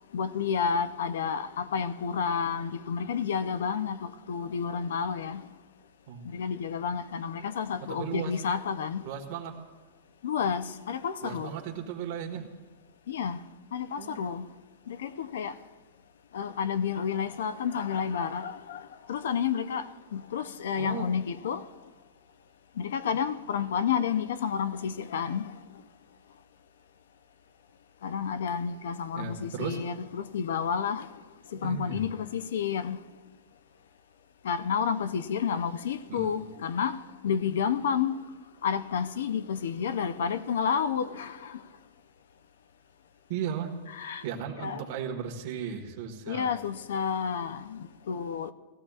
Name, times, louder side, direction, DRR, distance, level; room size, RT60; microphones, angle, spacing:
voice 1, 0.1-5.4 6.3-9.0 10.2-11.6 13.1-13.4 13.7-14.4 14.9-15.5 16.3-18.8 19.1-19.8 20.1-21.6 22.8-25.5 28.0-31.1 31.5-33.0 34.4-37.0 37.2-38.2 38.6-41.3 43.9-44.2 44.6-44.8 46.3-48.5, left 7 dB, 85° left, 0.6 m, -30 dB
voice 2, 7.9-8.3 9.0-9.6 11.2-12.5 14.0-14.2 20.8-21.1 23.1-23.2 29.1-29.8 31.5-32.0 36.1-36.4 43.3-43.7 44.2-46.5, right 8 dB, 45° right, 1.5 m, -36 dB
18.0 x 14.5 x 2.4 m
supercardioid pair, 170°, 0 cm